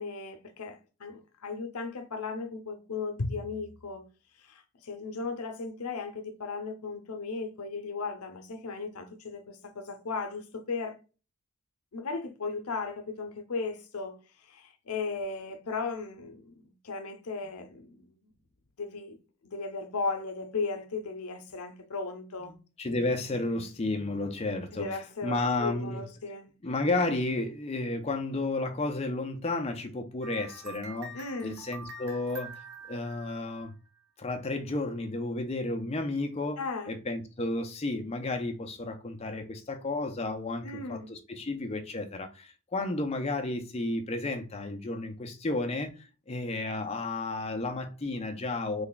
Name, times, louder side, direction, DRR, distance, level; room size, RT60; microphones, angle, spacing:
voice 1, 0.0-4.0 4.4-10.9 11.9-14.2 14.5-18.3 18.8-19.2 19.4-22.5 24.7-26.5 31.1-31.6 36.6-36.9 40.6-41.1, left 4 dB, 85° left, 0.6 m, -36 dB
voice 2, 22.5-24.9 25.2-26.0 26.6-31.1 31.4-32.5 32.9-33.7 34.2-36.6 36.9-48.9, left 2 dB, 25° left, 0.5 m, -32 dB
sound 1, 30.2-34.0, right 3 dB, 90° right, 0.7 m, -46 dB
3.3 x 2.3 x 3.8 m
head